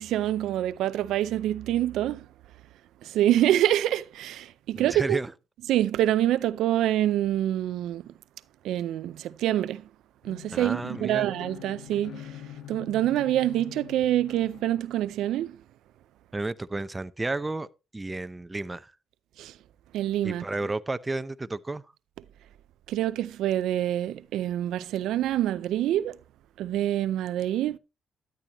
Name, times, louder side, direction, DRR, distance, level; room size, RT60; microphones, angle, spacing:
voice 1, 0.0-2.3 3.0-5.2 5.7-8.1 8.6-9.9 10.2-12.4 12.7-15.6 19.4-19.6 19.9-20.4 22.9-26.2 26.6-27.8, right 12 dB, 85° right, 0.5 m, -26 dB
voice 2, 4.7-5.3 10.5-11.3 16.3-17.7 17.9-18.9 20.2-21.8, right 2 dB, 15° right, 0.7 m, -32 dB
sound 1, 10.2-14.8, left 11 dB, 75° left, 1.7 m, -44 dB
13.0 x 10.5 x 3.0 m
cardioid pair, 90°, 0 cm